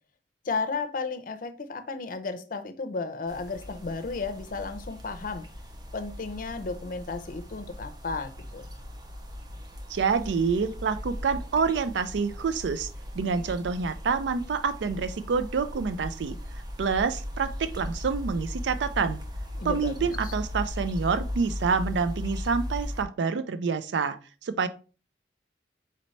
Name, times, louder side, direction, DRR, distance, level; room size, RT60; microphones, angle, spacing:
voice 1, 0.4-5.5 5.9-8.7 19.6-20.3, left 4 dB, 50° left, 0.5 m, -34 dB
sound 1, 3.3-23.0, left 1 dB, 25° right, 0.6 m, -38 dB
voice 2, 9.9-12.9 13.2-16.4 16.8-19.2 19.6-24.7, right 5 dB, 85° right, 0.4 m, -27 dB
4.1 x 4.0 x 3.1 m
head